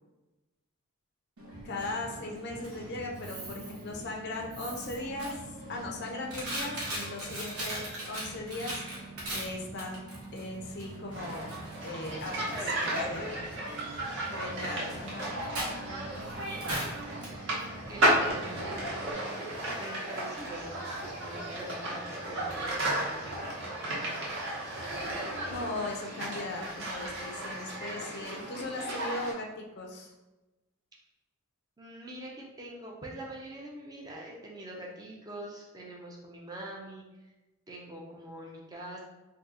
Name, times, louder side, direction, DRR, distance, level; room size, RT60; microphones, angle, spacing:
Coin (dropping), 1.4-19.1, right 1 dB, 85° right, 0.9 m, -41 dB
voice 1, 1.6-5.4 5.7-8.8 9.3-10.0 10.3-11.5 11.8-13.3 14.3-15.3 25.4-30.1, left 2 dB, 50° left, 1 dB, 0.5 m, -38 dB
sound 1, 11.1-29.3, right 1 dB, 55° right, 0.9 m, -34 dB
voice 2, 12.5-13.1 15.8-16.7 17.9-18.7 19.4-23.6 31.8-37.0 37.7-39.0, right 1 dB, 15° right, -2 dB, 0.4 m, -44 dB
2.7 x 2.3 x 3.6 m, 1.1 s
head